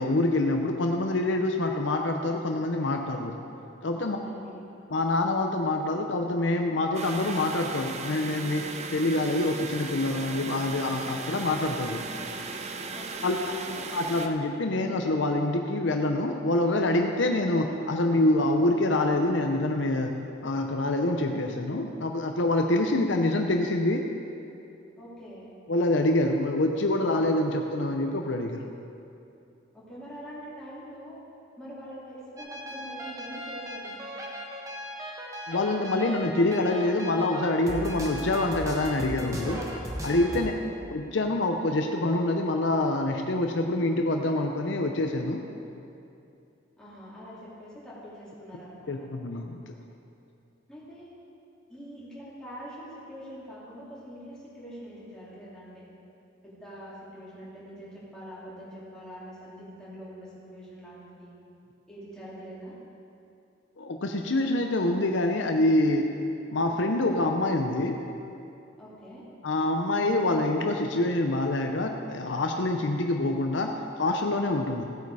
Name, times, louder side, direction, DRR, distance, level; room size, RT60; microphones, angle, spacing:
voice 1, 0.0-3.3 3.8-4.2 4.9-12.0 13.2-13.4 13.9-20.1 20.4-24.0 25.7-28.7 35.5-39.6 40.0-40.5 40.9-45.4 48.9-49.6 63.8-66.1 66.5-68.0 69.4-73.7 74.0-74.8, left 2 dB, 65° left, 3 dB, 0.7 m, -26 dB
voice 2, 4.0-4.7 12.9-13.8 25.0-25.5 29.7-31.2 31.6-34.0 40.3-40.8 46.8-48.9 50.7-51.1 51.7-55.8 56.4-61.3 61.9-62.7 68.8-69.3, equal, 5° left, -9 dB, 3.2 m, -44 dB
sound 1, 6.9-14.3, right 4 dB, 35° right, 0.6 m, -37 dB
sound 2, 32.4-40.4, equal, 15° right, 1.3 m, -37 dB
15.5 x 8.4 x 4.8 m, 2.7 s
head